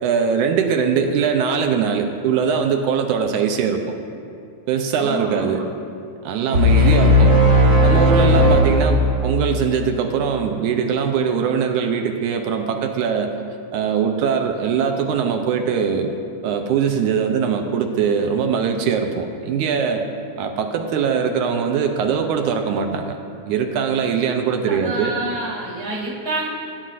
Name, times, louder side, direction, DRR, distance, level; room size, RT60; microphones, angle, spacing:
voice 1, 0.0-3.8 4.7-5.6 6.2-7.4 7.8-13.3 13.7-16.1 16.4-20.0 20.4-23.2 23.5-25.2, right 6 dB, 80° right, 4 dB, 2.0 m, -21 dB
voice 2, 5.0-5.7 24.6-26.5, right 2 dB, 15° right, -3 dB, 1.2 m, -28 dB
sound 1, 6.5-9.5, left 1 dB, 45° right, 1.3 m, -15 dB
18.5 x 9.3 x 2.5 m, 2.6 s
omnidirectional pair, 3.6 m